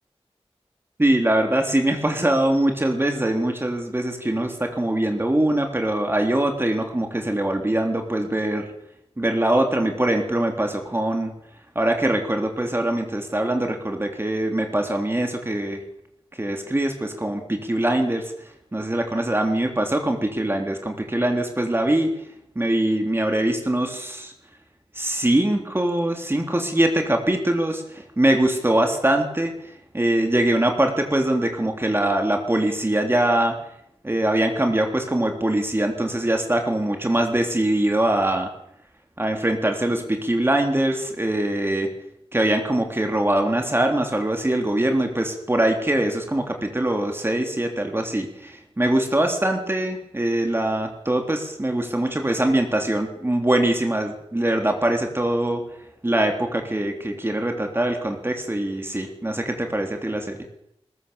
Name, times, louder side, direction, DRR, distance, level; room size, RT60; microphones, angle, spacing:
voice 1, 1.0-8.7 9.2-11.3 11.8-15.8 16.4-18.3 18.7-22.1 22.6-24.3 25.0-29.5 29.9-33.6 34.0-38.5 39.2-41.9 42.3-55.6 56.0-60.4, right 1 dB, 20° right, 3 dB, 3.5 m, -23 dB
21.5 x 21.0 x 7.2 m, 0.76 s
wide cardioid pair, 90°, 10 cm